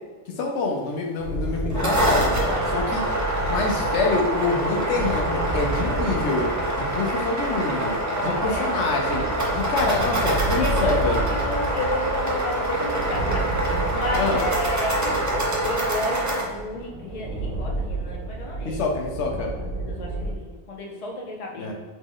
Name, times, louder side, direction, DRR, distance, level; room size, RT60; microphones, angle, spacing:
voice 1, 0.4-2.2 2.7-3.0 3.4-6.5 6.7-9.2 9.5-11.2 14.2-14.4 18.6-19.5 21.6-21.7, left 3 dB, 90° left, 1 dB, 1.0 m, -26 dB
sound 1, 1.2-20.3, right 2 dB, 70° right, 0.9 m, -31 dB
sound 2, 1.5-16.4, right 1 dB, 25° right, 0.4 m, -26 dB
voice 2, 1.7-3.0 8.1-8.7 10.6-18.8 19.7-21.7, left 2 dB, 40° left, -1 dB, 0.6 m, -32 dB
3.2 x 3.0 x 3.7 m, 1.3 s
omnidirectional pair, 1.2 m